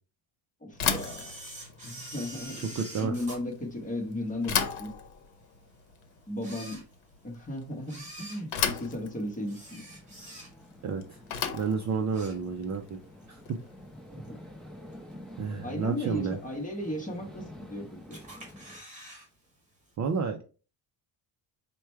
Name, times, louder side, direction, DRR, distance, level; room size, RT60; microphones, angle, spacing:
voice 1, 0.6-1.3 1.8-2.7 3.0-4.5 4.8-4.9 6.3-6.8 7.2-9.8 14.3-14.4 15.6-18.2, left 1 dB, 15° left, 1 dB, 1.0 m, -35 dB
Bicycle / Thump thud, 0.7-13.8, left 7 dB, 85° left, 0.9 m, -36 dB
Camera, 0.9-4.5 5.0-5.1 5.8-5.9 6.3-7.3 7.8-10.8 11.2-11.5 11.8-12.9 13.2-13.3 14.2-14.3 14.9-15.3 15.7-15.8 16.0-16.1 16.3-16.4 17.2-17.7 18.1-19.3 19.5-19.6 19.9-20.0, right 1 dB, 15° right, 1.5 m, -46 dB
voice 2, 2.6-3.1 10.8-11.2 11.5-13.0 13.3-13.4 15.4-16.4 20.0-20.4, right 5 dB, 40° right, 5 dB, 0.4 m, -30 dB
sound 1, 9.4-18.8, left 1 dB, ahead, 0.6 m, -49 dB
4.7 x 2.2 x 4.3 m, 0.35 s
cardioid pair, 175°, 46 cm